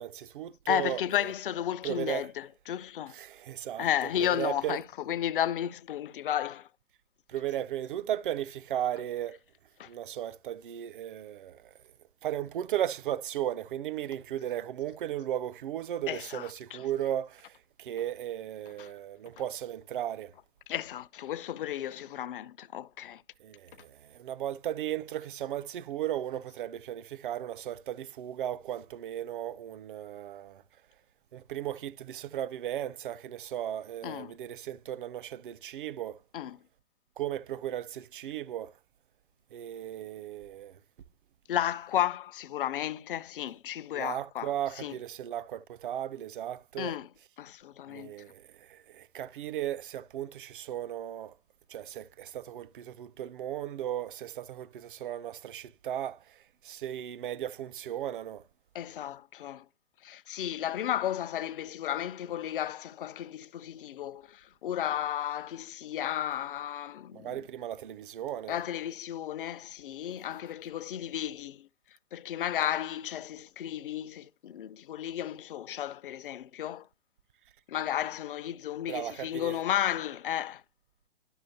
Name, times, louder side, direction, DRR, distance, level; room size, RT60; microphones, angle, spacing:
voice 1, 0.0-1.3 1.8-2.3 3.1-4.8 7.3-9.4 9.9-11.7 12.2-20.3 23.4-30.6 31.3-36.2 37.2-38.7 39.5-40.8 43.9-47.0 47.9-51.3 51.7-58.4 67.1-68.6 78.9-79.6, right 11 dB, 55° right, 0.4 m, -36 dB
voice 2, 0.7-3.1 3.8-6.7 9.8-9.9 16.1-16.8 18.8-18.9 20.7-23.2 34.0-34.3 36.3-36.6 41.5-44.5 44.8-44.9 46.8-47.1 47.4-48.1 58.7-59.6 60.0-67.4 68.5-71.7 72.1-76.9 77.7-80.6, left 11 dB, 55° left, 0.5 m, -33 dB
11.0 x 6.2 x 2.7 m
figure-of-eight pair, 115°, 32 cm